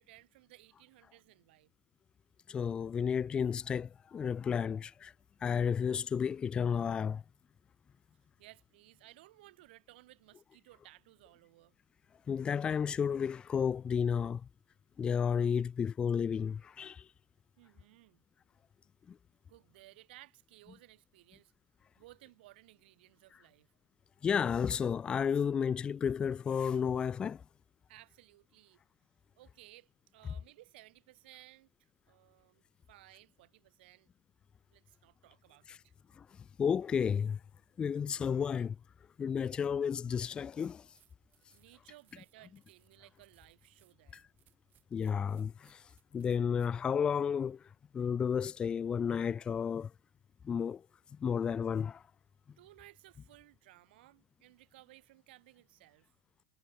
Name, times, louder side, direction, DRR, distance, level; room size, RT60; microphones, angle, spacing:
voice 1, 0.0-1.7 8.4-11.8 17.6-18.2 19.5-21.5 22.0-23.7 27.9-28.8 29.4-32.6 32.9-34.1 34.7-35.9 41.5-44.3 52.6-56.1, right 18 dB, 70° right, 5.4 m, -59 dB
voice 2, 2.5-5.1 5.4-7.2 12.3-14.4 15.0-17.1 19.1-19.2 24.2-27.4 35.7-35.8 36.2-36.3 36.6-37.4 37.8-38.8 39.2-40.8 44.1-44.2 44.9-45.8 46.1-47.6 47.9-49.9 50.4-50.8 51.2-52.0, left 7 dB, 15° left, 0.4 m, -32 dB
sound 1, 40.6-46.8, right 13 dB, 30° right, 7.9 m, -72 dB
supercardioid pair, 160°, 6 cm